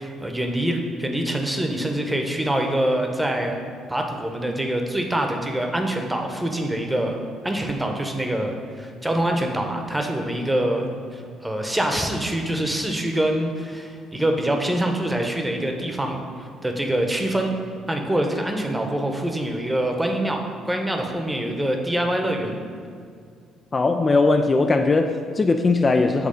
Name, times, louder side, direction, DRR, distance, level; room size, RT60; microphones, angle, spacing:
voice 1, 0.0-3.5 3.9-7.2 7.4-17.5 17.9-22.6, right 1 dB, 10° right, 3 dB, 0.9 m, -25 dB
voice 2, 23.7-26.3, left 3 dB, 35° left, 5 dB, 0.3 m, -19 dB
7.7 x 3.3 x 5.2 m, 2.2 s
hypercardioid pair, 50°, 0 cm